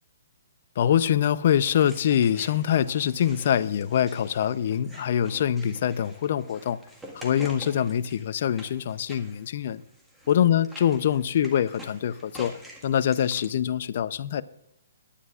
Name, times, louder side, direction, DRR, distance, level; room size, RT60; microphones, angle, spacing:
voice 1, 0.8-6.8 7.1-9.8 10.3-12.6 12.8-14.4, left 9 dB, 55° left, 0.6 m, -24 dB
sound 1, 1.6-13.5, equal, 5° right, 1.7 m, -47 dB
22.0 x 10.0 x 2.5 m
hypercardioid pair, 140°, 0 cm